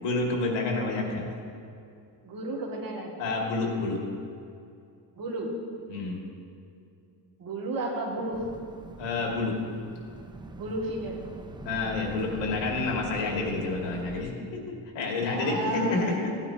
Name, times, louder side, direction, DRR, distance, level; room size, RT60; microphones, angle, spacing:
voice 1, 0.0-1.3 3.2-4.0 5.9-6.2 9.0-9.6 11.6-16.3, left 3 dB, 85° left, -1 dB, 2.3 m, -29 dB
voice 2, 2.2-3.2 5.2-5.5 7.4-8.4 10.6-11.2 15.2-16.4, right 2 dB, 50° right, -2 dB, 2.4 m, -33 dB
sound 1, 8.3-14.2, right 2 dB, 10° right, 0.4 m, -43 dB
16.0 x 9.1 x 2.9 m, 2.4 s
cardioid pair, 115°, 43 cm